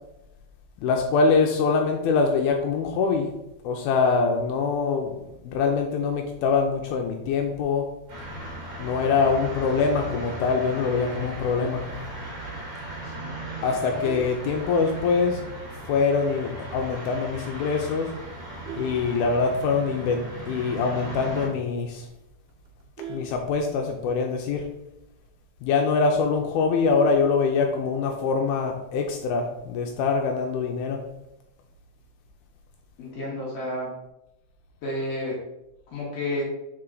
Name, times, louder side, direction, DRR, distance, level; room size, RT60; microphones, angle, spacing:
voice 1, 0.8-3.3 3.6-5.1 5.4-7.8 8.8-11.9 13.6-15.4 15.9-18.1 18.8-22.1 23.1-24.7 25.6-31.0, left 4 dB, 80° left, 2 dB, 2.4 m, -24 dB
sound 1, 8.1-21.5, right 1 dB, 55° right, 2.7 m, -37 dB
voice 2, 13.0-13.4 33.0-33.9 34.8-35.4 35.9-36.4, left 1 dB, 60° left, -4 dB, 1.8 m, -31 dB
Vehicle horn car horn honking, 13.7-15.2 15.7-15.9 16.3-16.4 16.8-16.9 17.2-17.5 18.1-19.9 20.3-20.4 20.7-20.8 21.2-21.3 21.6-21.7 22.0-24.0 25.2-25.7, right 4 dB, 85° right, 3.0 m, -42 dB
5.8 x 4.3 x 3.8 m, 0.89 s
omnidirectional pair, 4.6 m